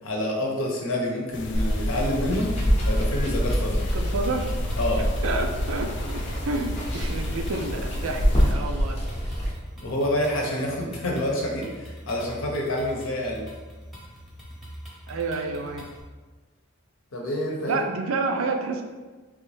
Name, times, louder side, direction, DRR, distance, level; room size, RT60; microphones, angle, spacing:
voice 1, 0.0-2.5 2.8-3.8 4.8-5.0 9.8-13.4 17.1-17.8, left 1 dB, 80° left, -1 dB, 0.8 m, -27 dB
sound 1, 1.3-8.5, left 3 dB, 60° left, 0.3 m, -39 dB
sound 2, 1.4-16.0, equal, ahead, 0.7 m, -43 dB
Water, 1.5-9.5, equal, 35° left, 0.7 m, -26 dB
voice 2, 3.9-4.5 5.2-8.2 8.5-9.0 15.1-15.8 17.7-18.8, right 3 dB, 90° right, 4 dB, 0.4 m, -29 dB
3.3 x 2.6 x 3.3 m, 1.3 s
head